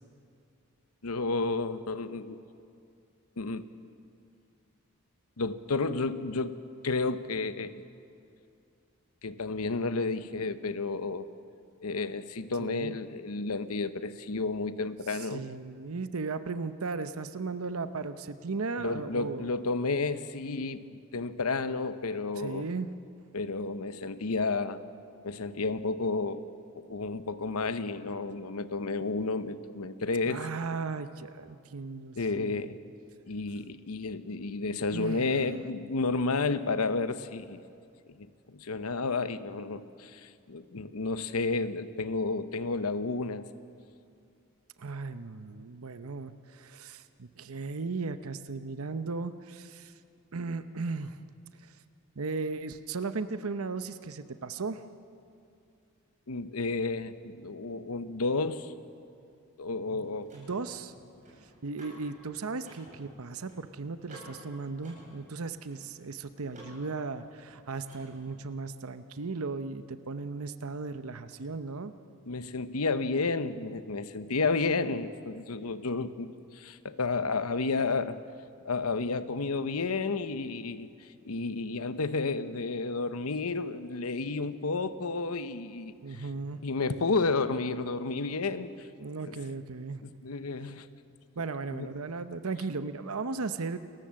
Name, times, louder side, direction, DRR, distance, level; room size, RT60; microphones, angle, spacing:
voice 1, 1.0-2.4 3.4-3.7 5.4-6.6 6.8-7.8 9.2-11.3 11.8-15.5 18.8-22.7 23.3-24.8 25.2-26.4 26.8-30.5 32.2-32.8 33.3-37.6 38.1-43.5 56.3-58.7 59.6-60.3 72.3-78.2 78.6-86.3 86.6-88.9 89.3-89.4 90.0-90.9 91.7-91.9, left 3 dB, 85° left, 12 dB, 0.9 m, -31 dB
voice 2, 12.6-12.9 15.3-19.5 22.4-22.9 30.3-32.6 34.9-35.4 44.8-49.9 50.3-51.2 51.6-51.7 52.2-54.8 59.9-60.0 60.3-60.9 61.6-71.9 86.0-86.6 89.0-90.0 91.4-93.8, right 4 dB, 75° right, 11 dB, 0.8 m, -36 dB
Car / Mechanisms, 59.5-68.5, right 1 dB, 35° right, 7.8 m, -54 dB
29.0 x 14.5 x 7.6 m, 2.5 s
head